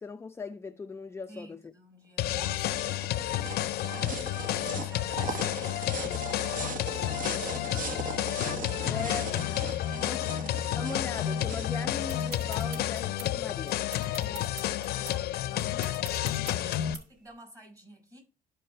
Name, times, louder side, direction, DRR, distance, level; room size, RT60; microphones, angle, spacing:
voice 1, 0.0-1.7 8.9-9.5 10.0-10.2 10.8-13.8, left 5 dB, 15° left, 0.4 m, -39 dB
voice 2, 1.3-8.4 8.8-9.2 9.5-10.7 14.1-18.2, right 1 dB, 20° right, 5.2 m, -51 dB
sound 1, 2.2-16.9, left 13 dB, 65° left, 0.5 m, -31 dB
sound 2, 2.2-13.1, right 4 dB, 50° right, 1.2 m, -40 dB
sound 3, 12.1-17.3, right 3 dB, 85° right, 1.7 m, -46 dB
12.0 x 4.7 x 3.2 m
cardioid pair, 110°, 17 cm